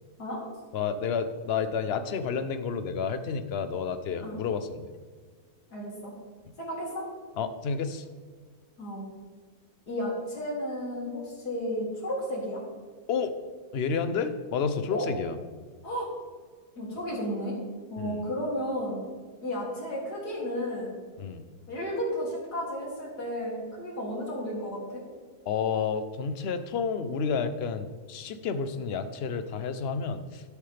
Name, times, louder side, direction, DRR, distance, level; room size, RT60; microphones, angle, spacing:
voice 1, 0.7-4.8 7.4-8.0 13.1-13.3 13.7-15.4 18.0-18.2 21.2-21.4 25.5-30.4, left 6 dB, 50° left, 10 dB, 0.8 m, -30 dB
voice 2, 5.7-6.1 6.6-7.1 8.8-9.1 9.9-12.6 14.9-15.1 15.8-16.1 16.8-17.5 17.9-19.0 19.4-20.9 21.7-25.0, equal, 85° left, -4 dB, 3.5 m, -33 dB
13.5 x 8.2 x 3.4 m, 1.5 s
omnidirectional pair, 1.6 m